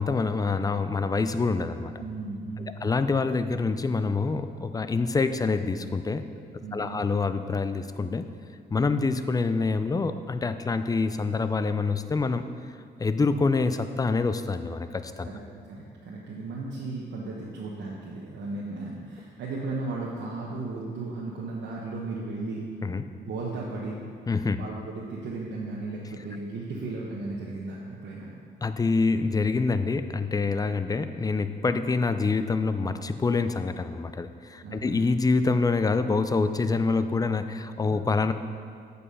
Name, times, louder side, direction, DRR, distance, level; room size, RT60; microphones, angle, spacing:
voice 1, 0.0-1.9 2.8-6.2 6.7-8.3 8.7-12.5 13.0-15.3 22.8-23.0 24.3-24.6 28.6-38.3, left 4 dB, 20° left, 10 dB, 0.4 m, -26 dB
voice 2, 2.0-2.9 6.6-7.0 15.2-15.4 15.7-22.6 23.2-24.0 24.6-28.3 34.6-35.0, right 3 dB, 80° right, -4 dB, 1.1 m, -35 dB
8.4 x 5.5 x 5.5 m, 2.2 s
cardioid pair, 95°, 18 cm